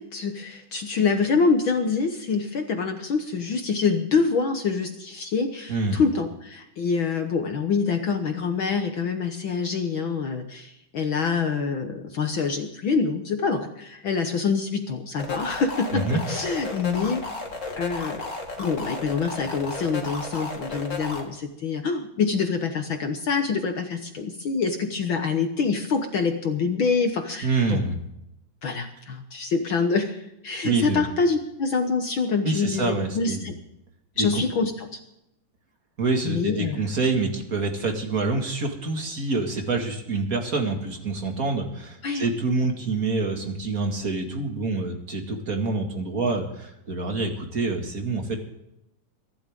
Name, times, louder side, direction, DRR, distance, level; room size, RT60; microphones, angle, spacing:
voice 1, 0.0-17.2 17.7-18.3 18.6-27.8 28.6-33.5 34.2-35.0 36.2-36.8 42.0-42.3, left 5 dB, 60° left, 5 dB, 1.4 m, -26 dB
voice 2, 5.7-6.0 15.9-16.2 27.4-28.0 30.6-31.0 32.4-33.5 34.2-34.3 36.0-48.4, right 3 dB, 30° right, 3 dB, 2.0 m, -26 dB
sound 1, 15.2-21.2, left 3 dB, 25° left, 2.3 m, -33 dB
24.0 x 12.0 x 3.7 m, 0.84 s
omnidirectional pair, 3.7 m